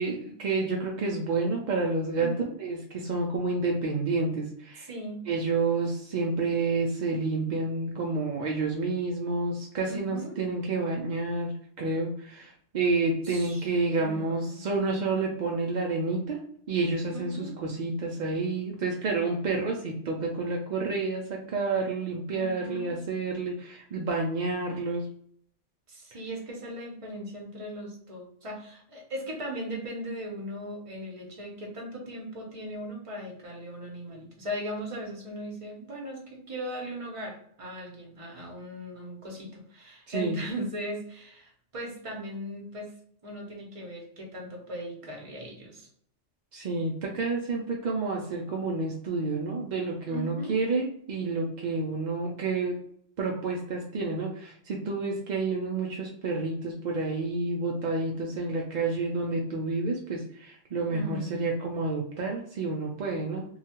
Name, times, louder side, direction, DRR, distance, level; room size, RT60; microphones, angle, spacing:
voice 1, 0.0-2.3 2.6-4.9 5.3-11.5 11.8-25.1 40.1-40.4 46.5-52.8 53.2-63.4, right 3 dB, 70° right, -1 dB, 0.4 m, -29 dB
voice 2, 2.2-2.6 4.8-5.3 9.8-10.4 13.2-14.6 17.1-17.6 22.3-23.0 25.9-42.9 43.2-45.9 50.1-50.6 60.9-61.5, equal, 35° right, 0 dB, 0.7 m, -38 dB
2.8 x 2.3 x 2.8 m, 0.66 s
omnidirectional pair, 1.3 m